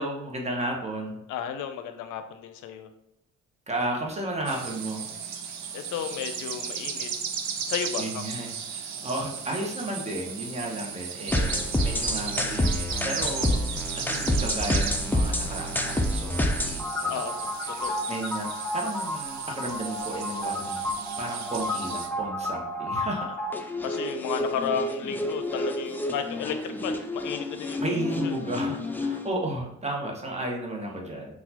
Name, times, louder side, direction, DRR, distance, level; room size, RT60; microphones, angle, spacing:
voice 1, 0.0-1.2 3.7-5.1 8.0-17.4 17.7-20.8 21.2-23.3 27.8-31.4, right 1 dB, 20° right, 0 dB, 0.9 m, -33 dB
voice 2, 1.3-2.9 5.7-7.1 7.7-8.3 17.1-17.3 17.8-18.0 23.8-28.4, left 8 dB, 80° left, 8 dB, 0.5 m, -33 dB
sound 1, 4.5-22.1, right 7 dB, 65° right, 0.6 m, -35 dB
sound 2, 11.3-29.3, left 1 dB, 5° left, 0.3 m, -29 dB
4.0 x 2.3 x 2.8 m, 0.79 s
cardioid pair, 90°, 30 cm